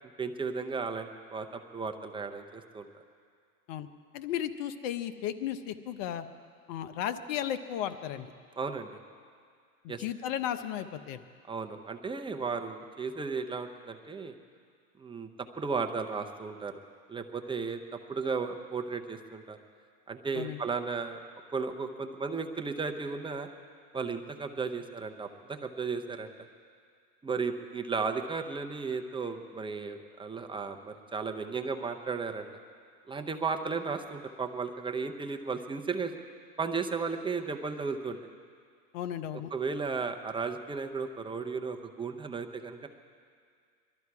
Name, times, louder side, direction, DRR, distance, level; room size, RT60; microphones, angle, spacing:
voice 1, 0.2-2.9 8.6-8.9 9.9-10.0 11.5-14.3 15.0-15.3 15.6-16.7 17.1-19.6 20.1-21.2 21.5-23.5 23.9-26.3 27.2-32.5 33.1-36.1 36.6-38.2 39.5-42.9, right 4 dB, 10° right, 5 dB, 0.9 m, -34 dB
voice 2, 4.1-6.2 6.7-8.3 9.8-11.2 20.3-20.6 38.9-39.5, left 10 dB, 55° left, 11 dB, 1.0 m, -34 dB
22.5 x 13.0 x 4.8 m, 2.1 s
hypercardioid pair, 115°, 45 cm